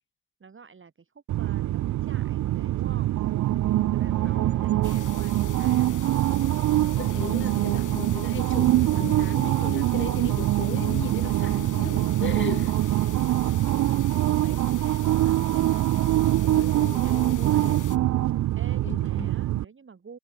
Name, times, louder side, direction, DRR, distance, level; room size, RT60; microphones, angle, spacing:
voice 1, 0.4-6.3 12.0-12.5 12.8-15.8 16.3-17.8 18.6-20.2, right 5 dB, 35° right, 2.4 m, -48 dB
sound 1, 1.3-19.6, right 14 dB, 55° right, 0.5 m, -24 dB
Wind instrument woodwind instrument, 3.9-9.9, equal, ahead, 4.9 m, -45 dB
sound 2, 4.8-18.0, left 9 dB, 65° left, 3.4 m, -45 dB
voice 2, 6.8-12.7 16.4-17.8 18.8-19.3, left 7 dB, 35° left, 0.9 m, -37 dB
supercardioid pair, 65°, 34 cm